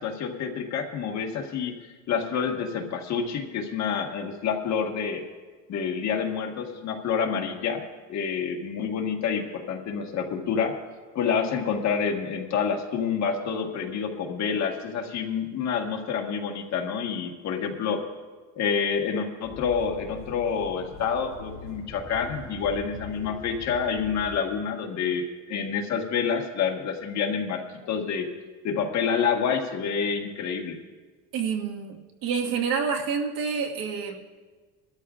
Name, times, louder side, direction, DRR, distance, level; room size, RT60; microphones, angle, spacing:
voice 1, 0.0-1.7 2.1-5.2 5.7-7.8 8.1-10.7 11.1-18.0 18.6-27.6 27.9-28.3 28.6-30.8, left 6 dB, 40° left, 3 dB, 1.5 m, -28 dB
sound 1, 19.4-24.4, equal, 30° right, 2.9 m, -43 dB
voice 2, 31.3-34.2, right 6 dB, 55° right, 2 dB, 1.7 m, -28 dB
22.5 x 13.0 x 2.4 m, 1.4 s
cardioid pair, 155°, 42 cm